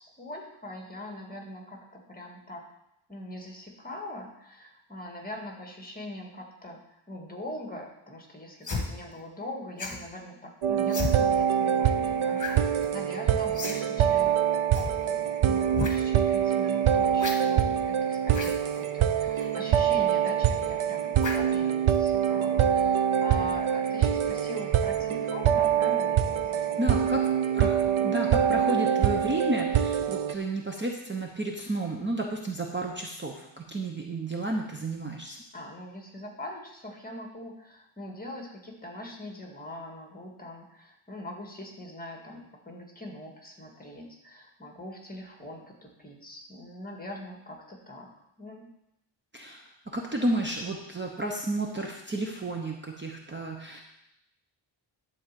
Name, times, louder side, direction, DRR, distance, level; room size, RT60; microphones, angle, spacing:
voice 1, 0.0-2.6 3.1-14.7 15.0-26.9 35.5-48.1 48.4-48.7, left 1 dB, 20° left, 1 dB, 1.9 m, -42 dB
sound 1, 8.6-8.9 9.8-10.0 10.9-11.1 12.4-12.6 12.8-12.9 13.5-13.8 14.0-14.1 14.7-14.9 15.7-15.9 17.2-17.4 18.3-18.5 19.3-19.5 21.2-21.5 21.9-22.1, left 4 dB, 40° left, 1.6 m, -32 dB
sound 2, 10.6-30.3, right 9 dB, 90° right, 0.7 m, -25 dB
sound 3, 11.3-29.6, right 3 dB, 65° right, 2.7 m, -44 dB
voice 2, 26.5-27.2 27.5-35.4 49.3-53.8, right 2 dB, 25° right, 1 dB, 0.9 m, -32 dB
12.0 x 4.2 x 7.6 m, 0.83 s
wide cardioid pair, 130°, 47 cm